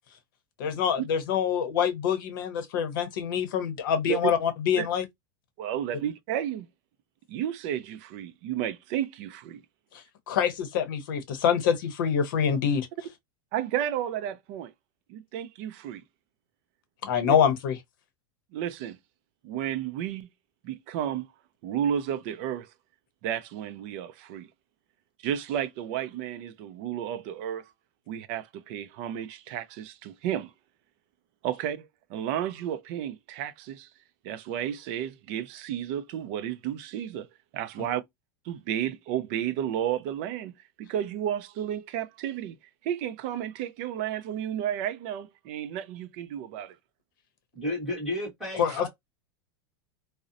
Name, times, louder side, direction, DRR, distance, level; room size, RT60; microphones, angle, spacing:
voice 1, 0.6-5.0 10.3-12.9 17.0-17.8 48.6-48.9, left 8 dB, 60° left, 0.7 m, -25 dB
voice 2, 5.6-6.7 7.3-9.6 13.5-14.7 15.1-16.0 17.2-17.4 18.5-19.0 19.4-20.3 20.6-21.3 21.6-22.7 23.2-24.5 25.2-27.7 28.1-30.5 31.4-33.9 34.2-37.3 37.5-38.0 38.5-40.5 40.8-42.6 42.8-46.8 48.7-48.8, right 10 dB, 35° right, 0.3 m, -32 dB
voice 3, 47.5-48.9, left 1 dB, ahead, 1.1 m, -32 dB
2.7 x 2.0 x 2.4 m
supercardioid pair, 175°, 12 cm